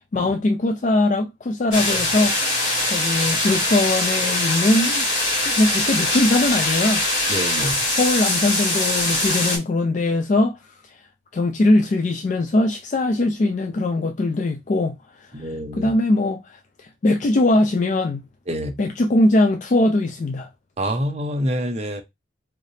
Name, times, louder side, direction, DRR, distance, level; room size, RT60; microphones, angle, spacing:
voice 1, 0.1-5.0 5.4-7.0 7.9-10.9 11.3-18.3 18.8-20.5, left 2 dB, 40° left, 0.3 m, -21 dB
sound 1, 1.7-9.6, left 1 dB, 75° left, 2.7 m, -22 dB
voice 2, 7.3-7.8 15.3-15.9 18.5-18.8 20.8-22.0, equal, 35° right, 0.6 m, -26 dB
3.8 x 3.2 x 2.7 m
head